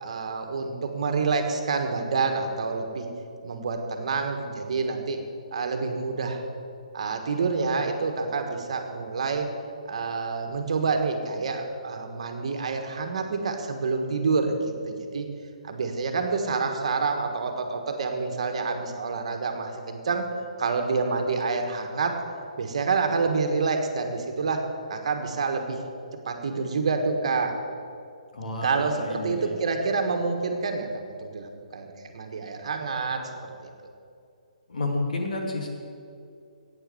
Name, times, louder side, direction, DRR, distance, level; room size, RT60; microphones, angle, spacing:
voice 1, 0.0-3.1 3.4-5.2 5.5-6.4 6.9-9.5 9.9-14.6 14.9-15.3 15.6-20.3 20.6-22.2 22.6-25.8 26.2-27.6 28.6-33.7, right 4 dB, 55° right, 5 dB, 1.5 m, -28 dB
voice 2, 28.3-29.6 34.7-35.7, left 2 dB, 80° left, 2 dB, 2.6 m, -30 dB
11.5 x 8.6 x 7.0 m, 2.4 s
hypercardioid pair, 175°, 4 cm